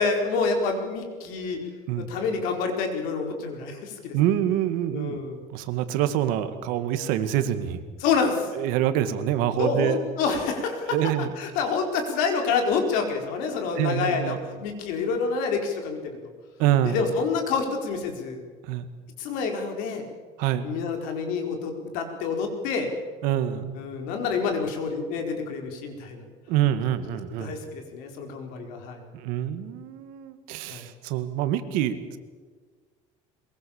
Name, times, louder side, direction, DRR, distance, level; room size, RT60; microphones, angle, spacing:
voice 1, 0.0-1.6 1.9-4.1 4.9-5.4 8.0-8.5 9.6-11.0 11.4-16.1 16.8-18.4 19.2-20.0 20.6-22.9 23.8-26.2 27.4-29.0 30.7-30.8, left 5 dB, 80° left, 4 dB, 4.6 m, -27 dB
voice 2, 4.1-5.2 5.5-7.8 8.6-10.0 10.9-11.3 13.8-14.4 16.6-17.0 18.6-18.9 20.4-20.7 23.2-23.8 26.5-27.5 29.1-32.2, right 11 dB, 80° right, 10 dB, 2.0 m, -26 dB
22.5 x 22.0 x 7.2 m, 1.5 s
cardioid pair, 165°, 14 cm